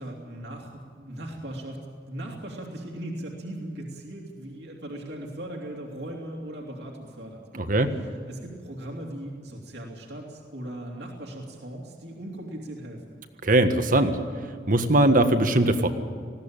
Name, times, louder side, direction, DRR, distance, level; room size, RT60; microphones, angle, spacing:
voice 1, 0.0-1.8 2.1-7.4 7.9-13.2, right 1 dB, 65° right, 0 dB, 2.8 m, -38 dB
voice 2, 7.5-7.9 13.4-14.2 14.7-15.9, right 1 dB, 50° right, 8 dB, 1.5 m, -20 dB
20.5 x 16.5 x 8.9 m, 2.1 s
head